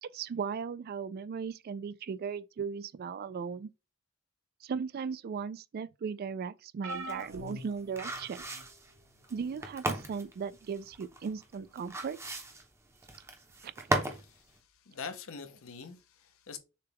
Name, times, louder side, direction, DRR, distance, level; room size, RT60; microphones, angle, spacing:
voice 1, 0.0-3.7 4.6-8.4 9.3-12.2 13.6-13.9, right 6 dB, 45° right, 0.3 m, -37 dB
sound 1, 6.8-8.6 9.4-9.6 10.9-11.0, right 1 dB, 70° right, 0.9 m, -43 dB
sound 2, 6.9-14.3 14.6-14.7, right 2 dB, 15° right, 0.6 m, -36 dB
voice 2, 14.9-16.6, left 5 dB, 70° left, 0.7 m, -44 dB
6.5 x 2.3 x 3.4 m
head